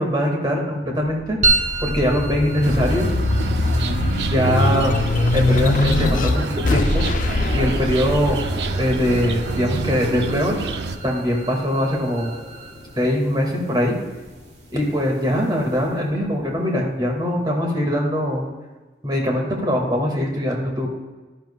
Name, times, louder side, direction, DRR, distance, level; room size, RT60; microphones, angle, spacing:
voice 1, 0.0-1.4 1.8-3.1 4.3-4.9 5.3-7.0 7.5-8.4 8.8-10.6 11.0-12.3 13.0-13.9 14.7-18.5 19.0-20.9, equal, 25° right, 0 dB, 2.0 m, -22 dB
sound 1, 1.1-11.9 12.4-13.5, left 2 dB, 45° left, 0.5 m, -23 dB
sound 2, 1.4-16.1, right 3 dB, 40° right, 1.5 m, -32 dB
sound 3, 2.6-11.0, right 3 dB, 75° right, 0.6 m, -27 dB
12.0 x 10.5 x 2.3 m, 1.2 s
head